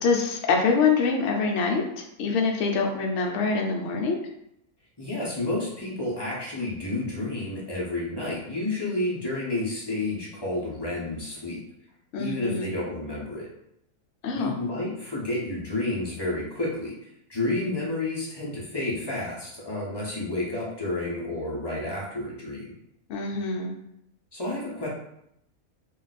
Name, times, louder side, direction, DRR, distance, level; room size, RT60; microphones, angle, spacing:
voice 1, 0.0-4.2 12.1-12.7 14.2-14.5 23.1-23.7, left 4 dB, 65° left, 2 dB, 0.8 m, -25 dB
voice 2, 5.0-11.6 12.2-13.5 14.3-17.0 17.3-22.7 24.3-24.9, left 2 dB, 30° left, -6 dB, 0.5 m, -30 dB
2.5 x 2.3 x 4.0 m, 0.78 s
omnidirectional pair, 1.6 m